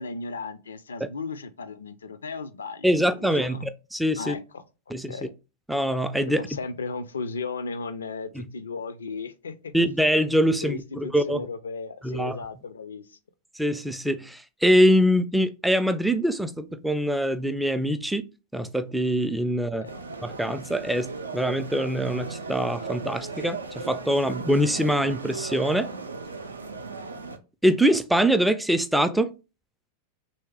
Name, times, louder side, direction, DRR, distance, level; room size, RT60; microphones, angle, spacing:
voice 1, 0.0-2.9 3.2-3.7 4.2-4.6 5.1-5.3 6.4-9.7 10.6-13.2 19.7-20.0, left 4 dB, 70° left, 0.4 m, -35 dB
voice 2, 2.8-4.4 4.9-5.2 5.7-6.5 8.3-8.5 9.7-11.5 12.0-12.4 13.5-18.3 18.5-19.9 20.2-25.9 27.6-29.3, equal, ahead, 0.3 m, -24 dB
sound 1, 19.8-27.4, right 4 dB, 75° right, 0.4 m, -37 dB
3.2 x 2.7 x 3.2 m
figure-of-eight pair, 90°, 0 cm